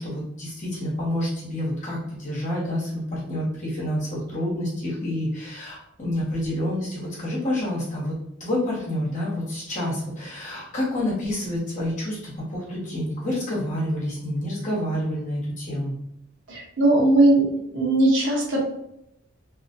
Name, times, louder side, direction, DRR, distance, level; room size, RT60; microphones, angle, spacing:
voice 1, 0.0-8.1 8.4-15.9, left 1 dB, 35° left, -7 dB, 1.2 m, -28 dB
voice 2, 16.5-17.5 17.7-18.6, right 2 dB, 65° right, -2 dB, 0.8 m, -19 dB
2.7 x 2.4 x 2.6 m, 0.78 s
head